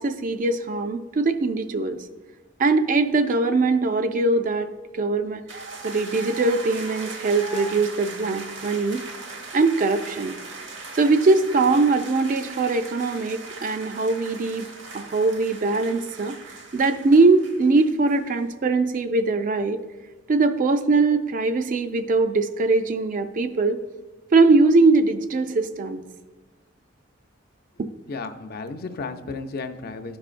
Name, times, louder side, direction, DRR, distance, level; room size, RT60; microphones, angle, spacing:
voice 1, 0.0-2.0 2.6-4.7 5.0-5.4 5.8-9.0 9.5-10.3 11.0-14.7 14.9-16.4 16.7-19.8 20.3-23.8 24.3-26.0, right 3 dB, 45° right, 8 dB, 0.4 m, -21 dB
sound 1, 5.5-18.2, right 3 dB, 65° right, 1.0 m, -39 dB
voice 2, 28.1-30.2, left 4 dB, 50° left, 7 dB, 0.5 m, -33 dB
12.5 x 4.9 x 2.5 m, 1.3 s
head